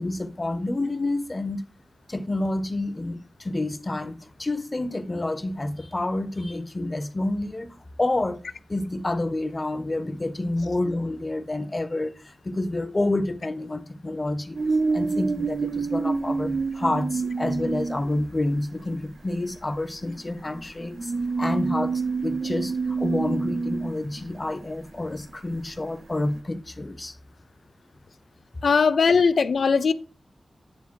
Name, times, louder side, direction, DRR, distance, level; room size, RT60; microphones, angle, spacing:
voice 1, 0.0-1.6 2.1-8.4 8.7-14.6 14.9-21.1 21.4-27.1, left 2 dB, 30° left, 0.9 m, -29 dB
sound 1, 14.5-18.3 19.4-19.5 20.2-24.6 26.3-26.4, right 4 dB, 55° right, 0.5 m, -27 dB
voice 2, 28.6-29.9, left 5 dB, 80° left, 0.4 m, -19 dB
9.6 x 3.4 x 4.6 m
wide cardioid pair, 85°, 0 cm